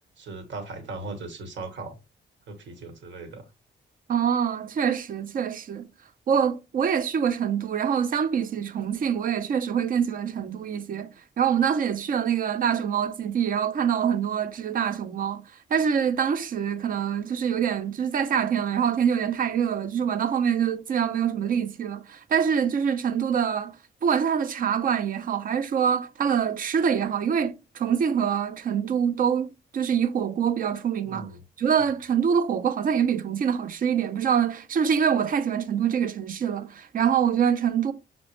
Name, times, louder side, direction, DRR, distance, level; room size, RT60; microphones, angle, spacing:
voice 1, 0.2-2.0 2.5-3.4 31.0-31.4, right 3 dB, 70° right, 1.1 m, -38 dB
voice 2, 4.1-5.8 6.3-15.4 15.7-23.8 24.0-31.3 31.6-37.9, right 7 dB, 45° right, 0.4 m, -25 dB
6.0 x 2.1 x 3.1 m
wide cardioid pair, 145°, 20 cm